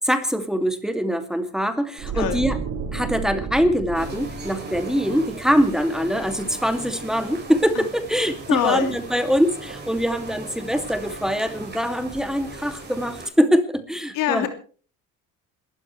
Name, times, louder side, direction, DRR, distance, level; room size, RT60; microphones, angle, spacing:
voice 1, 0.1-2.6 2.9-14.5, equal, ahead, 7 dB, 2.5 m, -23 dB
sound 1, 2.0-7.1 7.3-7.6, right 5 dB, 80° right, 4.4 m, -33 dB
sound 2, 3.9-13.3, right 3 dB, 30° right, 7.2 m, -38 dB
voice 2, 8.5-9.0 14.1-14.5, left 10 dB, 75° left, 7 dB, 3.1 m, -23 dB
28.0 x 13.5 x 3.3 m, 0.40 s
cardioid pair, 95°, 33 cm